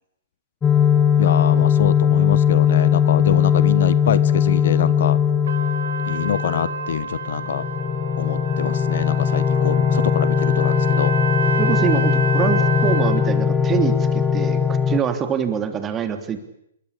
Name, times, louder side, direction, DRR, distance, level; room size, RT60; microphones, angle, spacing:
sound 1, 0.6-15.0, left 8 dB, 15° left, 2.7 m, -19 dB
voice 1, 1.2-5.2 6.1-7.6 8.2-11.1, left 9 dB, 60° left, 17 dB, 1.2 m, -25 dB
Trumpet, 5.5-13.3, right 6 dB, 65° right, 3.1 m, -29 dB
voice 2, 11.6-16.4, right 7 dB, 20° right, 7 dB, 3.2 m, -25 dB
28.0 x 22.5 x 8.6 m, 0.76 s
hypercardioid pair, 130°, 0 cm